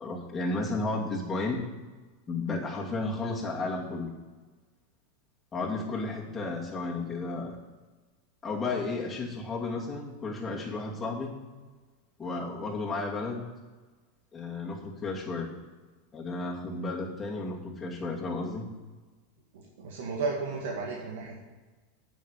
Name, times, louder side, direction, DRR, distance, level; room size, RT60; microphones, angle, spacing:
voice 1, 0.0-1.6 2.3-4.1 5.5-7.6 8.4-11.3 12.2-13.4 14.3-15.5 16.1-18.7, left 3 dB, 20° left, -2 dB, 2.6 m, -33 dB
voice 2, 19.5-21.4, right 4 dB, 75° right, -1 dB, 2.0 m, -34 dB
9.2 x 7.5 x 8.4 m, 1.3 s
hypercardioid pair, 120°, 0 cm